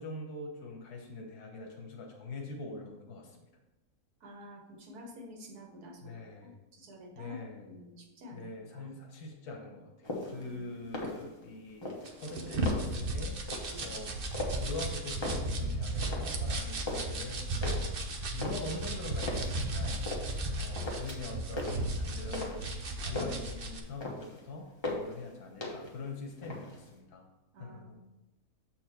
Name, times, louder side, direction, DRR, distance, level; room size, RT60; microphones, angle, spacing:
voice 1, 0.0-3.4 6.0-6.5 7.1-7.7 8.3-11.9 12.2-17.8 18.3-22.6 23.0-27.2 27.6-27.9, left 2 dB, 85° left, 1 dB, 1.5 m, -43 dB
voice 2, 4.2-6.0 6.7-7.4 7.7-8.9 10.2-10.5 13.7-13.9 27.5-27.9, left 1 dB, 85° right, 1 dB, 1.8 m, -49 dB
sound 1, 10.0-10.4 10.8-11.5 11.8-13.1 13.5-13.8 14.3-14.8 15.1-16.4 16.7-17.2 17.6-19.6 20.1-20.5 20.8-21.3 21.6-22.7 23.0-23.5 23.8-24.4 24.8-25.2 25.6-26.0 26.3-27.0, left 1 dB, 20° left, 1.1 m, -38 dB
sound 2, 12.1-23.8, right 1 dB, 50° right, 0.8 m, -35 dB
7.3 x 4.4 x 4.4 m, 1.0 s
omnidirectional pair, 1.6 m